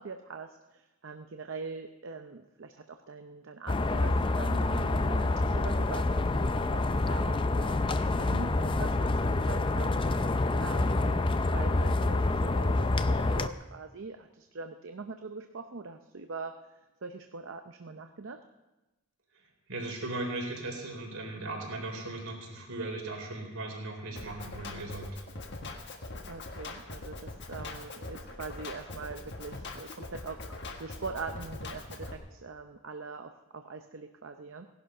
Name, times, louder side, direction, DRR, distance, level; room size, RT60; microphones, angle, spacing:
voice 1, 0.0-16.7 17.0-18.4 26.3-30.5 30.8-34.7, right 4 dB, 55° right, 6 dB, 0.7 m, -43 dB
sound 1, 3.7-13.5, left 2 dB, 20° left, 0.4 m, -27 dB
voice 2, 19.7-25.1, right 2 dB, 75° right, 0 dB, 3.9 m, -37 dB
Drum kit, 24.1-32.1, left 2 dB, 50° left, 1.5 m, -42 dB
17.5 x 11.5 x 5.5 m, 1.1 s
head